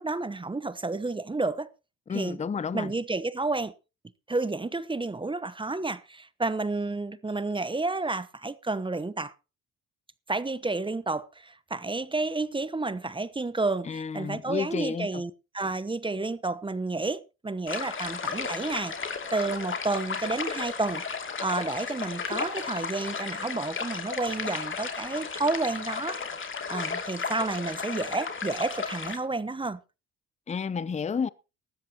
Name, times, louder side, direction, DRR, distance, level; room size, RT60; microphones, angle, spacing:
voice 1, 0.0-1.7 2.1-2.4 2.7-3.7 4.3-9.3 10.3-18.9 19.3-21.0 21.4-26.2 26.7-29.8, right 3 dB, 15° right, 0.9 m, -30 dB
voice 2, 2.1-2.9 13.9-15.2 30.5-31.3, left 6 dB, 20° left, 0.6 m, -31 dB
sound 1, 17.7-29.2, left 5 dB, 35° left, 2.6 m, -34 dB
18.5 x 13.5 x 2.9 m
supercardioid pair, 75°, 33 cm